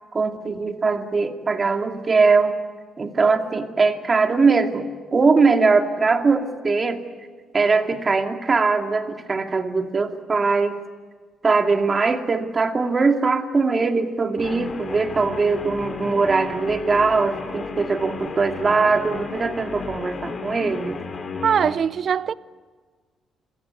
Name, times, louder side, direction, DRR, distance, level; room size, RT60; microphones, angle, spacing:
voice 1, 0.1-2.5 3.0-4.9 5.1-7.0 7.5-10.8 11.4-21.0, right 4 dB, 35° right, 2.4 m, -21 dB
Guitar, 14.4-21.8, left 5 dB, 40° left, 3.4 m, -33 dB
voice 2, 21.4-22.3, right 7 dB, 55° right, 0.6 m, -21 dB
28.0 x 16.0 x 9.5 m
cardioid pair, 90°, 0 cm